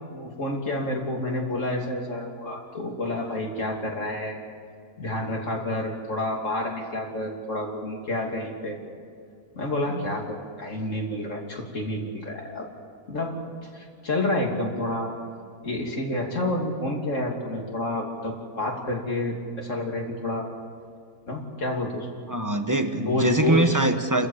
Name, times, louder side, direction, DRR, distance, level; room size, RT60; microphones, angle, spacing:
voice 1, 0.1-4.4 5.0-8.8 9.5-12.7 13.1-13.4 13.6-15.1 15.6-20.5 21.3-22.1 22.9-23.8, left 1 dB, 50° left, 0 dB, 3.2 m, -29 dB
voice 2, 22.2-24.3, right 1 dB, 15° right, 7 dB, 1.0 m, -23 dB
29.5 x 14.0 x 7.4 m, 2.3 s
omnidirectional pair, 1.7 m